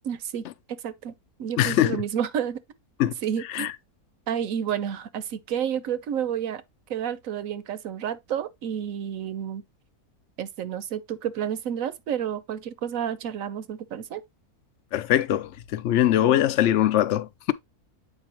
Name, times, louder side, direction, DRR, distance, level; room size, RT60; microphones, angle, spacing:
voice 1, 0.0-0.5 0.8-1.1 1.4-2.6 3.2-3.7 4.3-6.6 6.9-9.6 10.4-14.2, right 9 dB, 65° right, 1.0 m, -30 dB
voice 2, 1.6-2.0 3.0-3.1 3.5-3.7 14.9-17.5, left 12 dB, 65° left, 0.7 m, -22 dB
8.3 x 4.7 x 2.9 m
omnidirectional pair, 1.6 m